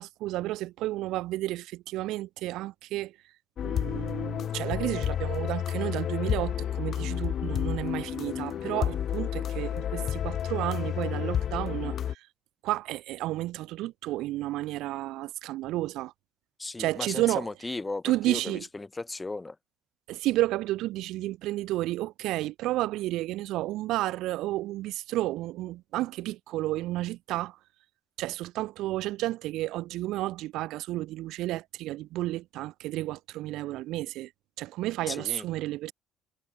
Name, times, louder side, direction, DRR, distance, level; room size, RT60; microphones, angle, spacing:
voice 1, 0.0-3.2 3.6-12.3 12.6-16.1 16.8-17.5 18.0-18.6 20.1-27.6 28.2-34.3 34.6-35.9, right 16 dB, 65° right, 1.0 m, -31 dB
sound 1, 3.6-12.2, left 9 dB, 50° left, 0.5 m, -30 dB
voice 2, 16.6-19.6 35.1-35.4, left 3 dB, 20° left, 2.5 m, -36 dB
hypercardioid pair, 55°, 0 cm